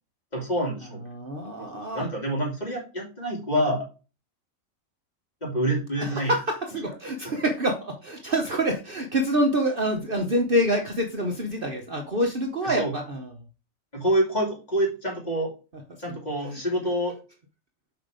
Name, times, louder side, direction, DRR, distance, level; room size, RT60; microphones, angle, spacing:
voice 1, 0.3-1.0 1.6-3.9 5.4-6.3 12.6-12.9 13.9-15.5 16.0-17.1, right 1 dB, 30° left, -2 dB, 3.3 m, -27 dB
voice 2, 1.1-2.1 6.0-13.3, right 1 dB, 45° right, 3 dB, 1.1 m, -26 dB
6.5 x 4.9 x 5.1 m, 0.32 s
omnidirectional pair, 1.4 m